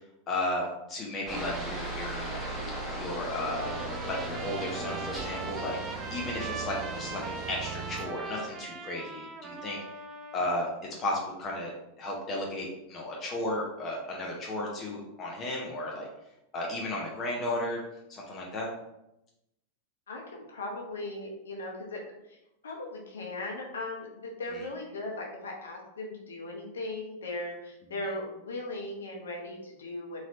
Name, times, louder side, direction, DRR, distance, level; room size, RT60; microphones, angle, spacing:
voice 1, 0.3-2.2 2.9-3.7 4.1-5.8 6.1-9.8 10.3-10.7 11.0-11.7 12.0-16.1 16.5-17.8 18.1-18.7 24.5-24.6, left 1 dB, 30° left, -3 dB, 0.7 m, -34 dB
Aircraft, 1.3-8.1, right 2 dB, 5° right, 1.0 m, -37 dB
Trumpet, 3.4-10.6, right 4 dB, 25° right, 0.4 m, -41 dB
voice 2, 20.1-22.0 22.2-22.4 22.6-30.2, left 2 dB, 65° left, 0 dB, 0.8 m, -38 dB
4.1 x 3.1 x 2.5 m, 0.87 s
figure-of-eight pair, 90°, 0 cm